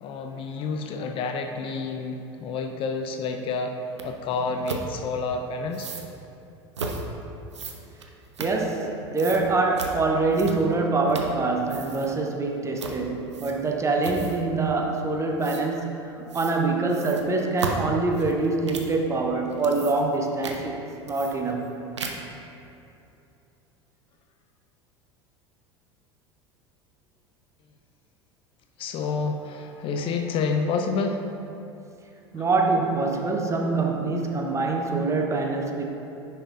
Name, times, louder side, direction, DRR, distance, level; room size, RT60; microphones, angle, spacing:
voice 1, 0.0-3.7 4.0-5.9 28.8-31.2, left 4 dB, 35° left, 5 dB, 0.5 m, -29 dB
sound 1, 4.0-4.1 4.7-4.9 5.7-6.1 6.7-7.0 7.5-8.9 9.2-9.4 9.8-9.9 10.3-10.8 11.1-11.4 11.6-12.1 12.8-13.0 13.3-13.7 14.0-14.5 15.4-15.6 16.3-16.6 16.9-19.0 19.5-20.2 20.4-20.6 21.1-21.7 22.0-22.4, right 4 dB, 75° right, 0.6 m, -35 dB
voice 2, 8.4-16.1 16.3-20.8 21.0-21.7 32.3-35.9, right 3 dB, 20° right, 2 dB, 0.8 m, -25 dB
9.8 x 5.6 x 2.5 m, 2.8 s
figure-of-eight pair, 75°, 15 cm